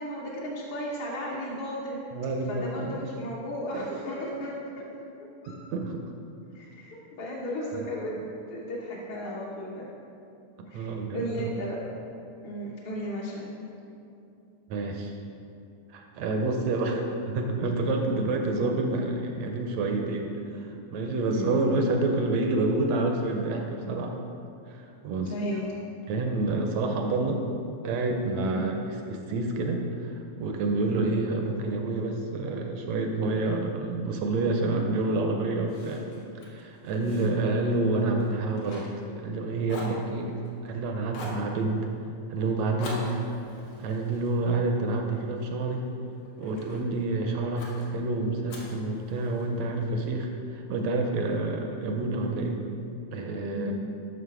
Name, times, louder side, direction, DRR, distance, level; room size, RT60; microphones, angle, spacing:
voice 1, 0.0-2.0 2.5-4.8 5.4-5.6 6.5-9.9 10.7-11.9 12.4-13.5 21.3-21.5 25.3-25.7 28.4-28.7 30.8-31.1 37.0-37.3 53.4-53.7, equal, 65° left, -7 dB, 1.4 m, -35 dB
voice 2, 2.1-3.0 3.9-4.0 5.5-6.0 10.7-11.5 14.7-15.2 15.9-24.2 24.7-25.3 26.1-27.4 27.8-36.0 36.5-38.9 39.2-40.3 40.6-41.8 42.3-43.1 43.8-45.9 46.4-52.6 53.1-53.7, right 2 dB, 75° right, 3 dB, 1.6 m, -28 dB
Fire, 35.7-39.4 39.7-40.7 41.1-41.5 42.8-45.2 45.7-46.8 47.6-47.9 48.5-49.6, left 1 dB, 85° left, 2.8 m, -43 dB
7.4 x 6.3 x 4.7 m, 2.7 s
omnidirectional pair, 3.5 m